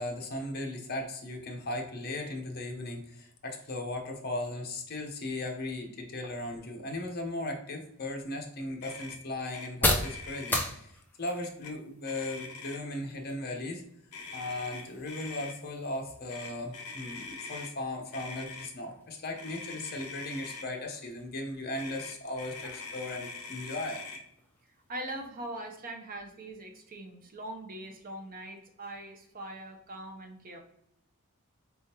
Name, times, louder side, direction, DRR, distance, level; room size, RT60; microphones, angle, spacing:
voice 1, 0.0-13.8 14.3-24.0, left 2 dB, 45° left, 2 dB, 0.8 m, -37 dB
sound 1, 7.7-25.3, left 1 dB, 10° left, 0.6 m, -40 dB
Motor vehicle (road), 8.8-9.2 9.5-9.7 10.0-10.6 11.4-11.7 12.0-13.0 14.1-15.5 16.3-17.7 18.1-18.7 19.4-20.7 21.7-24.2, left 4 dB, 80° left, 0.6 m, -43 dB
voice 2, 24.9-30.6, right 1 dB, 40° right, 3 dB, 0.7 m, -42 dB
4.2 x 3.6 x 2.9 m, 0.75 s
head